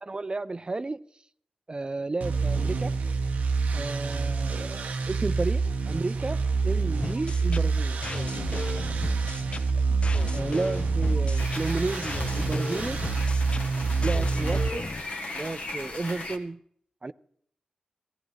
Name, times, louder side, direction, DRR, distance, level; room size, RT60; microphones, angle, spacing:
voice 1, 0.0-1.0 1.7-3.0 3.7-8.0 10.3-13.0 14.0-15.0 15.3-16.6 17.0-17.1, right 3 dB, 35° right, 0.5 m, -32 dB
sound 1, 2.2-14.7, right 4 dB, 80° right, 0.8 m, -27 dB
sound 2, 7.0-15.0, left 3 dB, 45° left, 0.4 m, -36 dB
sound 3, 11.4-16.4, left 2 dB, 70° left, 1.6 m, -38 dB
16.0 x 15.5 x 3.3 m
cardioid pair, 40°, 3 cm